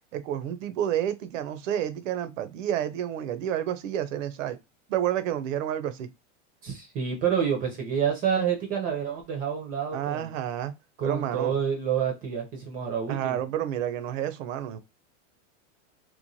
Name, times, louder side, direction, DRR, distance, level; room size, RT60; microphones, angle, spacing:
voice 1, 0.1-4.6 4.9-6.1 9.9-10.7 11.0-11.6 13.1-14.8, right 10 dB, 85° right, 0.6 m, -30 dB
voice 2, 6.6-10.3 11.0-13.4, right 8 dB, 25° right, 0.5 m, -28 dB
3.0 x 2.2 x 2.6 m
supercardioid pair, 155°, 37 cm